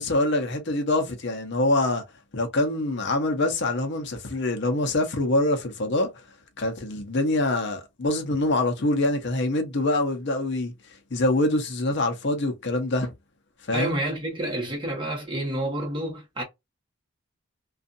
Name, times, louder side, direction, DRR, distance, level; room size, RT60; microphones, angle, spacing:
voice 1, 0.0-2.0 2.3-6.1 6.6-10.7 11.1-13.1 13.7-14.0, left 2 dB, 55° left, 0.7 m, -25 dB
voice 2, 13.7-16.4, right 1 dB, 25° right, 1.2 m, -29 dB
2.6 x 2.4 x 2.5 m
head